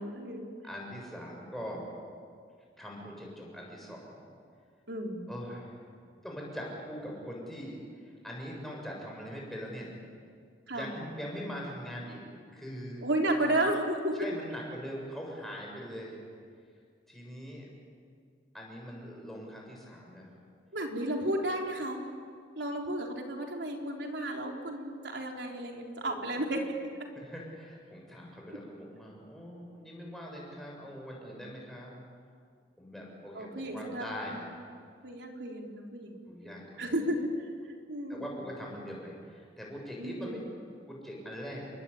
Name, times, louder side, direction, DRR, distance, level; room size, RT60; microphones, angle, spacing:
voice 1, 0.0-0.5 4.9-5.3 10.7-10.9 13.0-14.4 20.7-22.0 22.6-26.9 33.3-34.4 35.0-36.2 36.8-37.3 37.6-38.3 40.0-40.4, right 1 dB, 85° right, 1 dB, 4.0 m, -33 dB
voice 2, 0.6-1.9 2.8-4.2 5.3-5.8 6.2-9.9 10.7-12.2 12.5-13.1 13.4-13.5 14.1-16.2 17.1-17.7 18.5-20.4 26.0-26.6 27.1-32.0 32.8-34.4 36.3-37.0 38.1-40.4 40.9-41.7, equal, ahead, -2 dB, 7.3 m, -42 dB
29.0 x 23.5 x 8.7 m, 2.2 s
head